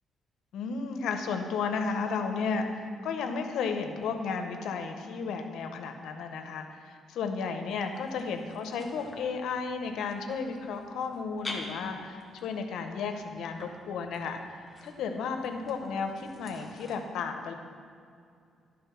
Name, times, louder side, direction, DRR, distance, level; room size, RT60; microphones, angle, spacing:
voice 1, 0.5-17.5, left 5 dB, 80° left, 6 dB, 0.7 m, -33 dB
sound 1, 7.7-16.9, left 1 dB, 15° left, 1.4 m, -48 dB
11.5 x 3.8 x 5.7 m, 2.4 s
cardioid pair, 90°, 0 cm